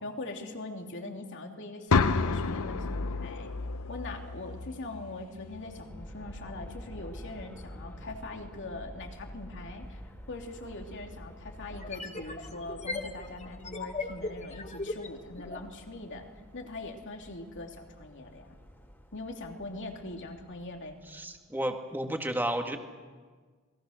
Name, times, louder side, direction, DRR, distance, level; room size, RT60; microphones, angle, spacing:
voice 1, 0.0-3.5 3.9-10.0 10.3-16.2 16.5-18.6 19.1-21.0, left 2 dB, 60° left, 3 dB, 2.8 m, -42 dB
sound 1, 1.9-5.9, left 4 dB, 75° left, 0.8 m, -30 dB
Aircraft, 5.5-21.5, equal, 10° left, 2.7 m, -49 dB
Old Sci Fi Machine, 10.3-10.4 11.7-15.7, left 3 dB, 35° left, 1.5 m, -38 dB
voice 2, 21.1-22.8, right 1 dB, 10° right, 4 dB, 2.0 m, -32 dB
27.5 x 21.0 x 6.5 m, 1.5 s
head